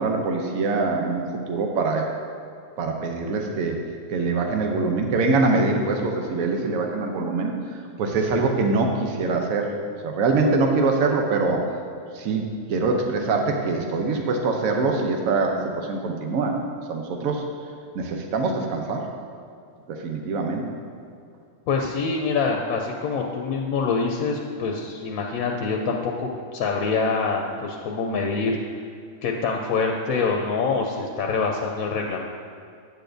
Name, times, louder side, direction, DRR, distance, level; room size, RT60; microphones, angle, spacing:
voice 1, 0.0-2.1 2.8-3.8 4.1-7.5 8.0-9.7 10.0-11.6 12.1-12.4 12.7-16.6 16.9-17.4 17.9-19.1 19.9-20.6, right 3 dB, 75° right, 2 dB, 1.1 m, -23 dB
voice 2, 21.7-28.5 29.2-32.3, left 4 dB, 80° left, 1 dB, 1.0 m, -25 dB
8.7 x 6.6 x 2.6 m, 2.4 s
omnidirectional pair, 1.5 m